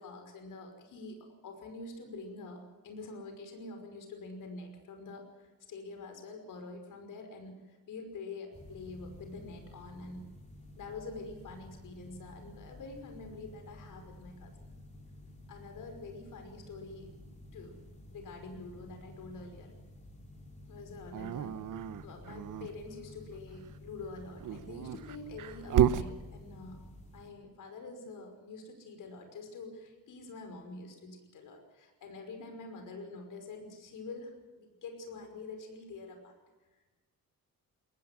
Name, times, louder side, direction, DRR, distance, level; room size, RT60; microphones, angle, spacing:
voice 1, 0.0-10.2 10.8-14.8 15.5-17.1 17.5-17.8 18.1-19.8 20.6-21.6 22.0-26.8 27.1-36.3 36.7-37.0, left 3 dB, 65° left, 5 dB, 5.6 m, -46 dB
sound 1, 8.5-27.3, left 1 dB, 20° left, 3.6 m, -52 dB
Dog, 21.1-22.7 24.3-26.1, right 10 dB, 65° right, 1.0 m, -31 dB
22.5 x 19.0 x 7.6 m, 1.2 s
wide cardioid pair, 170°, 33 cm